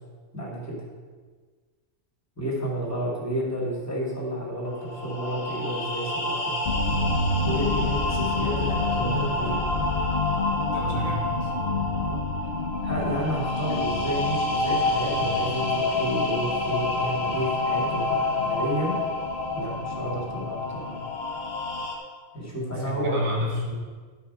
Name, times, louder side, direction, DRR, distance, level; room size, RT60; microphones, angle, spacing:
voice 1, 0.3-0.7 2.4-6.5 7.4-9.6 12.0-12.2 12.8-18.9 19.5-20.9 22.3-23.3, right 1 dB, 10° left, -3 dB, 2.7 m, -31 dB
sound 1, 4.7-22.0, left 2 dB, 85° left, 1.9 m, -29 dB
sound 2, 6.7-21.9, left 3 dB, 50° left, 0.8 m, -31 dB
voice 2, 10.7-11.5 22.6-23.7, equal, 75° right, -4 dB, 3.0 m, -30 dB
11.5 x 5.8 x 5.5 m, 1.5 s
omnidirectional pair, 1.4 m